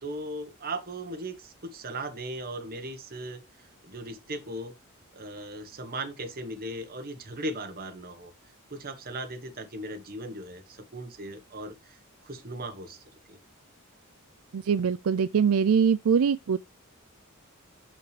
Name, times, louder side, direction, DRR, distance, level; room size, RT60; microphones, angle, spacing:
voice 1, 0.0-3.4 3.8-4.8 5.1-8.3 8.7-12.0 12.2-13.4, right 1 dB, 45° right, 1.3 m, -38 dB
voice 2, 14.5-16.6, right 6 dB, 80° right, 0.4 m, -23 dB
6.5 x 5.8 x 3.3 m
head